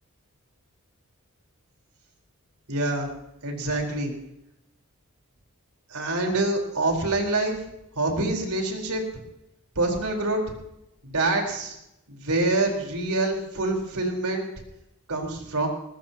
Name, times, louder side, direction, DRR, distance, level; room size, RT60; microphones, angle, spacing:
voice 1, 2.7-3.1 3.4-4.1 5.9-7.6 8.0-9.0 9.8-10.4 11.0-11.7 12.1-14.5 15.1-15.7, right 2 dB, 85° right, 1 dB, 4.4 m, -26 dB
21.0 x 19.5 x 3.0 m, 0.84 s
head